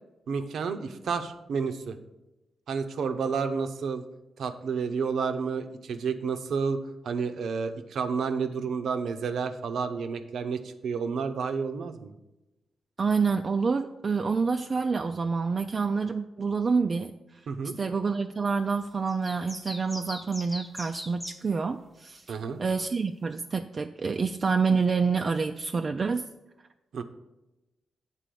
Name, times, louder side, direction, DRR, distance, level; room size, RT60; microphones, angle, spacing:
voice 1, 0.3-2.0 2.7-4.0 4.4-6.8 7.0-12.1 17.5-17.8 22.3-22.6 26.9-27.0, right 5 dB, 75° right, 8 dB, 0.7 m, -30 dB
voice 2, 13.0-17.1 17.8-26.2, right 5 dB, 35° right, 5 dB, 0.3 m, -27 dB
sound 1, 19.1-21.4, equal, 5° left, 0.8 m, -40 dB
7.7 x 4.1 x 6.9 m, 0.99 s
cardioid pair, 115°, 0 cm